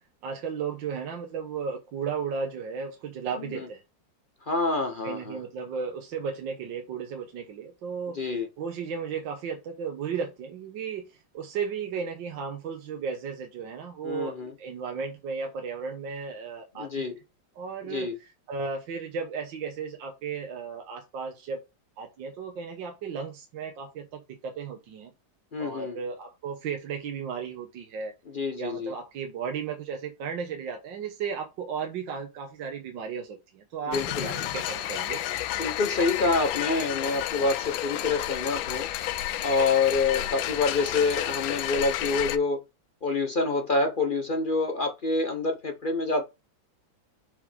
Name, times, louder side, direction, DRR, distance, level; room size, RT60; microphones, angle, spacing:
voice 1, 0.2-3.8 5.0-17.1 17.5-21.6 22.0-25.1 25.6-28.1 28.5-35.2 40.2-40.3, right 6 dB, 75° right, 1.7 m, -35 dB
voice 2, 4.5-5.4 8.1-8.5 14.0-14.5 16.8-17.1 17.9-18.1 25.5-26.0 28.3-28.9 33.8-34.3 35.6-38.9 39.4-42.6 43.0-46.2, left 3 dB, 50° left, 0.6 m, -27 dB
sound 1, 33.9-42.4, left 13 dB, 85° left, 1.4 m, -31 dB
6.9 x 5.1 x 3.4 m
omnidirectional pair, 2.1 m